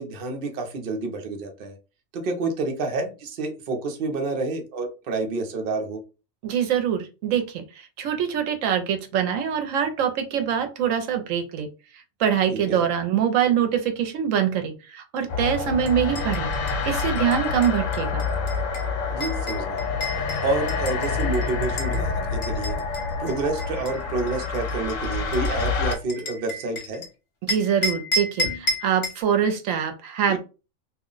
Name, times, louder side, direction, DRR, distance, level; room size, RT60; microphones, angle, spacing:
voice 1, 0.0-1.8 2.1-6.0 12.5-12.9 19.1-19.8 20.1-22.8 23.2-27.0 30.3-30.4, right 3 dB, 50° right, 3 dB, 0.7 m, -29 dB
voice 2, 6.4-11.7 12.2-16.5 16.9-18.3 27.4-30.4, right 8 dB, 80° right, 6 dB, 0.9 m, -24 dB
sound 1, 15.3-26.0, left 4 dB, 75° left, 0.9 m, -27 dB
sound 2, 15.8-22.0 22.4-27.1 27.5-29.2, left 1 dB, 55° left, 0.9 m, -32 dB
2.4 x 2.1 x 3.7 m, 0.31 s
omnidirectional pair, 1.4 m